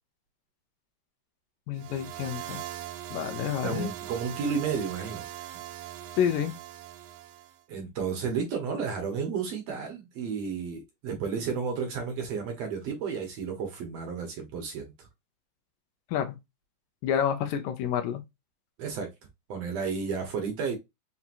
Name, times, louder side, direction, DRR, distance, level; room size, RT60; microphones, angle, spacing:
voice 1, 1.7-2.6 3.1-3.9 6.2-6.5 16.1-16.4 17.0-18.2, left 9 dB, 90° left, 2.5 m, -28 dB
sound 1, 1.8-7.6, right 12 dB, 85° right, 2.2 m, -41 dB
voice 2, 3.6-5.2 7.7-15.1 18.8-19.1 19.5-20.8, right 6 dB, 65° right, 1.8 m, -32 dB
5.8 x 2.9 x 2.4 m
omnidirectional pair, 3.7 m